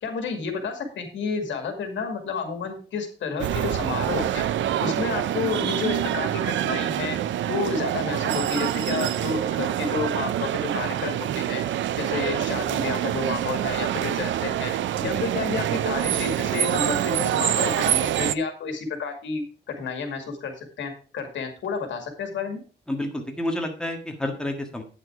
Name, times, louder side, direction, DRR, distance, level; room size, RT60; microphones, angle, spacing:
voice 1, 0.0-4.5 4.8-7.2 7.5-11.6 12.0-14.7 15.0-22.6, left 5 dB, 90° left, 6 dB, 2.2 m, -30 dB
sound 1, 3.4-18.3, right 11 dB, 85° right, 0.5 m, -26 dB
voice 2, 22.9-24.8, left 1 dB, 5° left, 3 dB, 1.7 m, -29 dB
9.2 x 6.7 x 4.7 m, 0.37 s
wide cardioid pair, 140°, 19 cm